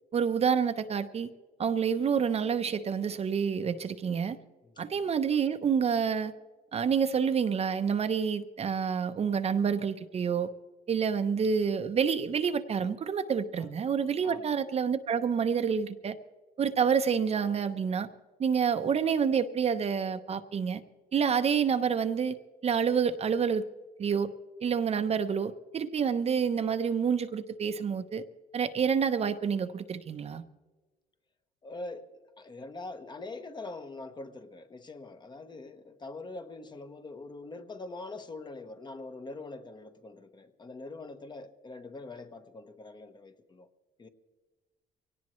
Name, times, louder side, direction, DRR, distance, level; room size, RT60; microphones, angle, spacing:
voice 1, 0.1-1.3 1.6-4.4 4.8-6.3 6.7-10.5 10.9-16.2 16.6-18.1 18.4-20.8 21.1-22.4 22.6-23.7 24.0-24.3 24.6-28.2 28.5-30.4, right 6 dB, 40° right, 0.8 m, -28 dB
voice 2, 14.2-14.5 31.6-32.1 32.4-43.7 44.0-44.1, left 2 dB, 25° left, 1.1 m, -43 dB
23.5 x 18.0 x 3.2 m
cardioid pair, 110°, 17 cm